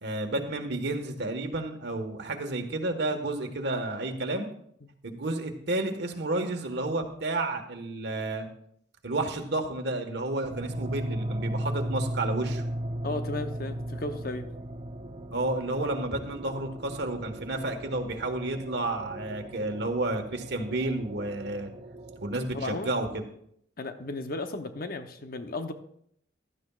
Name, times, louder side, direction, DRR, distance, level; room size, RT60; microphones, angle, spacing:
voice 1, 0.0-4.5 5.0-8.5 9.0-12.6 15.3-21.7 22.2-23.2, right 2 dB, 65° right, 5 dB, 1.5 m, -31 dB
sound 1, 10.4-22.4, right 1 dB, 35° right, 0.8 m, -37 dB
voice 2, 13.0-14.5 22.5-22.9 23.8-25.7, left 2 dB, 55° left, 7 dB, 0.8 m, -34 dB
15.5 x 12.0 x 2.4 m, 0.68 s
head